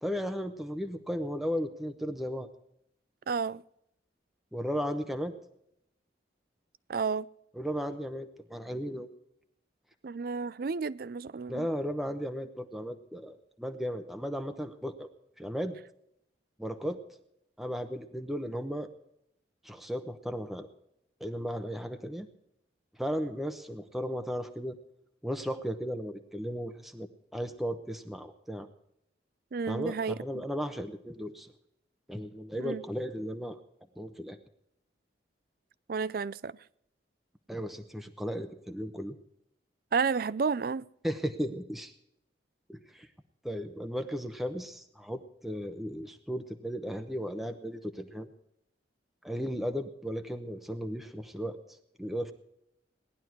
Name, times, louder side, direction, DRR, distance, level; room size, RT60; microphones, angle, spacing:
voice 1, 0.0-2.5 4.5-5.3 7.6-9.1 11.5-15.1 15.4-15.8 16.6-17.0 17.6-18.9 19.6-20.7 21.2-22.3 23.0-24.8 25.2-27.1 27.3-28.7 29.7-31.5 32.1-33.6 34.0-34.4 37.5-39.2 41.0-41.9 42.7-43.1 43.4-48.3 49.2-51.6 52.0-52.3, equal, ahead, 0.8 m, -35 dB
voice 2, 3.3-3.6 6.9-7.3 10.0-11.7 29.5-30.2 32.6-32.8 35.9-36.6 39.9-40.8, right 5 dB, 50° right, 0.4 m, -31 dB
18.0 x 11.0 x 4.5 m
head